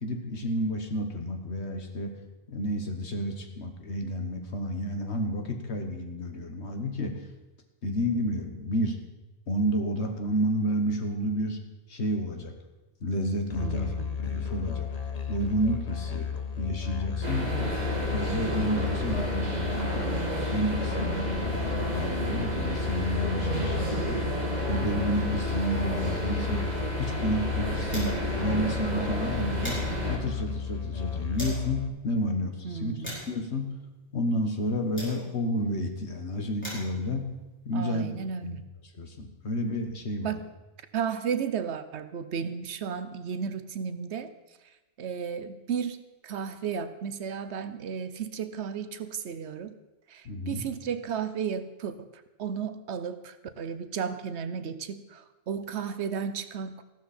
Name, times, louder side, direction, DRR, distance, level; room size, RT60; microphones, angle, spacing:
voice 1, 0.0-2.2 2.5-7.2 7.8-9.0 9.5-11.6 11.9-12.5 13.0-13.9 14.2-14.9 15.3-16.3 16.6-17.7 18.1-20.1 20.5-24.3 24.7-26.7 27.0-29.8 30.1-33.0 33.3-33.7 34.1-37.3 37.7-38.1 38.4-38.5 38.9-40.3 50.3-50.6, equal, 70° left, 5 dB, 1.7 m, -30 dB
Musical instrument, 13.5-31.9, left 7 dB, 35° left, 1.1 m, -34 dB
voice 2, 13.6-14.2 17.4-17.8 23.5-24.1 32.6-33.2 37.7-38.6 40.2-40.5 40.9-44.3 45.0-46.0 46.2-49.7 50.1-56.8, right 7 dB, 75° right, 11 dB, 1.0 m, -34 dB
sound 1, 17.2-30.2, right 1 dB, 35° right, 2.5 m, -32 dB
sound 2, 28.2-28.4 28.7-28.8 29.2-31.7 32.3-35.6 36.3-38.5, equal, 10° left, 5.3 m, -43 dB
15.0 x 12.5 x 4.3 m, 1.1 s
omnidirectional pair, 1.2 m